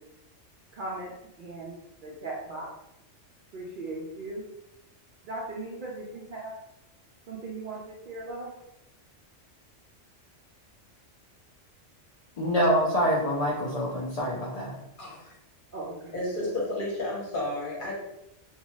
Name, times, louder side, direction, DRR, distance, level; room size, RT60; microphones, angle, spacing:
voice 1, 0.7-1.1 1.4-2.7 3.5-4.4 5.2-6.5 7.3-8.5 15.7-16.1, right 2 dB, 60° right, -3 dB, 0.5 m, -38 dB
voice 2, 12.4-14.8, equal, 65° left, -5 dB, 0.3 m, -26 dB
voice 3, 15.0-15.4 16.1-17.9, left 1 dB, 50° left, -3 dB, 0.9 m, -32 dB
2.6 x 2.3 x 3.0 m, 0.86 s
omnidirectional pair, 1.3 m